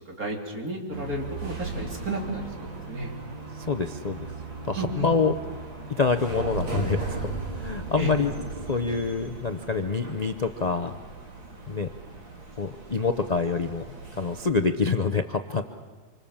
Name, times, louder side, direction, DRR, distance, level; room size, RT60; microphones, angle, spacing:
voice 1, 0.1-3.1 4.8-5.1 8.0-8.1, equal, 50° right, 0 dB, 3.7 m, -32 dB
sound 1, 0.9-14.5, right 3 dB, 85° right, 3.9 m, -37 dB
voice 2, 3.6-4.2 4.7-5.4 6.0-8.3 8.7-10.9 11.7-11.9 12.6-13.8 14.2-15.6, left 4 dB, 70° left, 7 dB, 0.4 m, -26 dB
27.0 x 25.5 x 7.3 m, 1.4 s
omnidirectional pair, 2.1 m